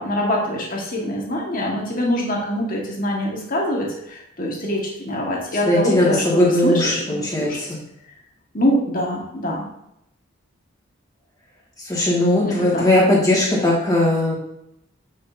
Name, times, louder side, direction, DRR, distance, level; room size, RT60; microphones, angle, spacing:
voice 1, 0.0-6.2 6.6-7.6 8.5-9.6 12.4-12.8, left 1 dB, 40° left, -2 dB, 1.7 m, -24 dB
voice 2, 5.7-7.8 11.8-14.3, left 1 dB, 15° left, -5 dB, 2.1 m, -19 dB
8.5 x 6.3 x 2.8 m, 0.79 s
head